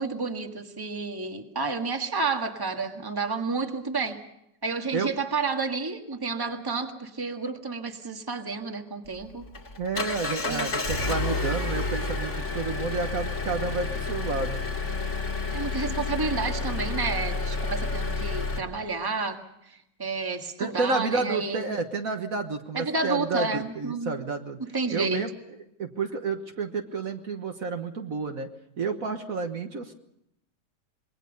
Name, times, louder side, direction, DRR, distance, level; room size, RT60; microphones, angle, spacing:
voice 1, 0.0-4.2 4.6-9.4 10.4-10.7 15.5-19.4 20.0-21.7 22.7-24.2 24.7-25.2, right 4 dB, 15° right, 4 dB, 1.6 m, -30 dB
Engine, 9.1-18.6, left 3 dB, 45° left, 2.7 m, -30 dB
voice 2, 9.8-14.6 20.6-24.6 24.9-25.3 25.8-28.5 28.8-29.9, right 4 dB, 55° right, 5 dB, 1.7 m, -30 dB
26.5 x 21.5 x 5.3 m, 0.81 s
omnidirectional pair, 1.9 m